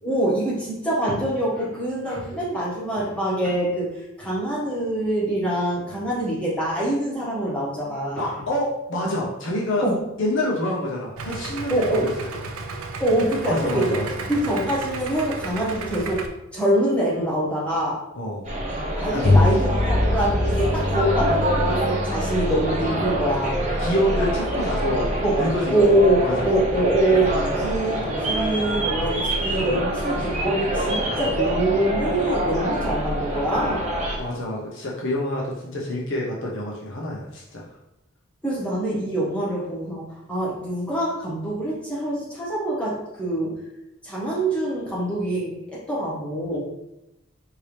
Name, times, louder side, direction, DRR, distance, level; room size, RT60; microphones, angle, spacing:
voice 1, 0.0-8.3 9.8-10.0 11.7-12.1 13.0-14.0 14.3-16.2 16.5-18.0 19.0-23.6 25.2-25.4 25.7-33.9 38.4-43.6 44.0-46.6, right 1 dB, 5° left, -8 dB, 1.5 m, -24 dB
voice 2, 8.1-9.9 10.2-12.1 13.4-14.3 18.1-18.5 19.1-19.5 23.8-25.1 25.4-25.9 26.2-26.5 34.2-37.7 46.5-46.6, left 1 dB, 60° left, -3 dB, 0.8 m, -27 dB
Idling, 11.2-16.3, right 3 dB, 80° right, 0.5 m, -33 dB
sound 1, 18.4-34.2, right 1 dB, 35° right, 0.9 m, -25 dB
Bowed string instrument, 19.2-24.9, left 2 dB, 45° left, 0.3 m, -25 dB
4.6 x 2.8 x 3.3 m, 0.91 s
head